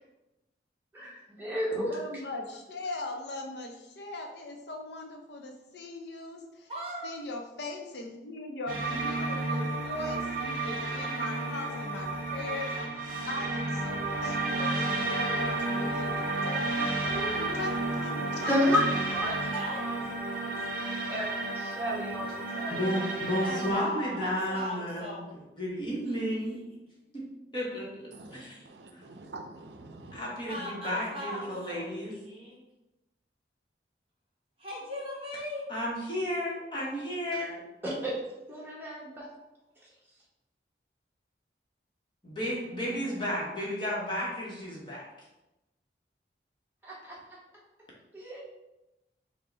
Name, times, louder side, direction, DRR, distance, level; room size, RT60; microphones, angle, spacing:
voice 1, 1.0-2.0 18.5-18.8 19.1-20.0 20.4-23.0 24.4-24.5 37.8-38.2 38.5-39.3 46.8-47.4 48.1-48.4, left 1 dB, 10° right, -6 dB, 1.0 m, -32 dB
voice 2, 1.7-6.7 7.0-18.5, left 2 dB, 80° left, 3 dB, 0.6 m, -39 dB
voice 3, 6.7-7.4 19.5-20.4 23.4-25.3 26.0-26.1 30.5-32.6 34.6-35.7, equal, 30° right, -3 dB, 1.2 m, -39 dB
sound 1, 8.7-23.7, right 2 dB, 50° right, 0.8 m, -32 dB
voice 4, 22.7-25.1 25.6-26.6 27.1-27.2 27.5-27.9 28.3-28.6 28.9-29.0 30.1-32.1 35.7-37.6 42.2-45.0, equal, 25° left, -5 dB, 1.1 m, -32 dB
voice 5, 28.1-30.2, right 2 dB, 80° right, 4 dB, 0.5 m, -46 dB
5.4 x 2.2 x 3.9 m, 0.98 s
head